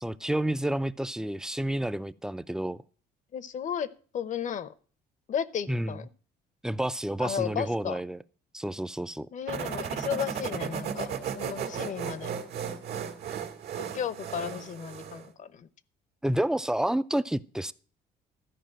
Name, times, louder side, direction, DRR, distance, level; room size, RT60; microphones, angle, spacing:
voice 1, 0.0-2.8 5.7-6.0 6.6-8.2 8.5-9.3 16.2-17.7, right 1 dB, 5° right, 14 dB, 0.4 m, -29 dB
voice 2, 3.3-4.7 5.3-6.1 7.2-8.0 9.3-11.1 11.4-12.3 13.8-15.7, left 8 dB, 45° left, 17 dB, 0.8 m, -34 dB
sound 1, 9.5-15.3, right 7 dB, 80° right, 1.9 m, -35 dB
13.5 x 5.0 x 7.5 m, 0.40 s
cardioid pair, 110°, 17 cm